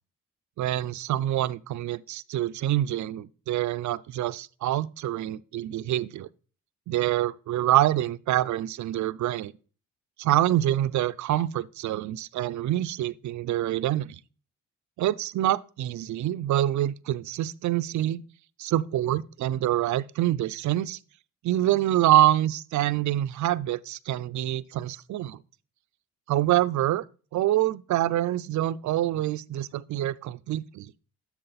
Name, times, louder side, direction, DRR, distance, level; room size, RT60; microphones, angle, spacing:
voice 1, 0.6-6.3 6.9-9.5 10.2-14.2 15.0-18.2 18.6-21.0 21.4-25.4 26.3-27.0 27.3-30.9, right 13 dB, 60° right, 0.5 m, -26 dB
7.8 x 6.1 x 3.9 m
supercardioid pair, 55°, 33 cm